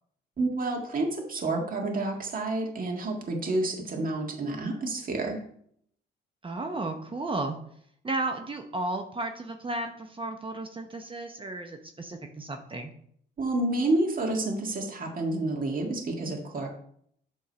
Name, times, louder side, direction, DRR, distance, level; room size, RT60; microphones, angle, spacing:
voice 1, 0.4-5.4 13.4-16.7, right 2 dB, 45° right, 1 dB, 1.9 m, -29 dB
voice 2, 6.4-7.6 8.0-12.9, right 2 dB, 25° right, 5 dB, 0.9 m, -33 dB
8.5 x 3.7 x 6.6 m, 0.66 s
cardioid pair, 90°, 20 cm